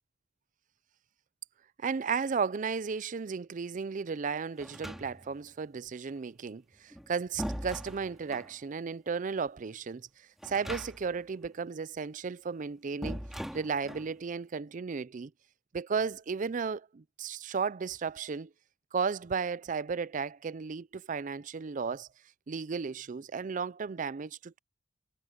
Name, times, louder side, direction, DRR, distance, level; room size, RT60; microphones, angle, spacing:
voice 1, 1.8-10.1 10.4-13.2 13.5-15.3 15.7-18.5 18.9-22.1 22.5-24.6, right 5 dB, 45° right, 0.4 m, -34 dB
sound 1, 4.6-5.5 6.7-8.6 10.4-11.2 11.5-11.6 13.0-14.1, equal, ahead, 2.1 m, -40 dB
head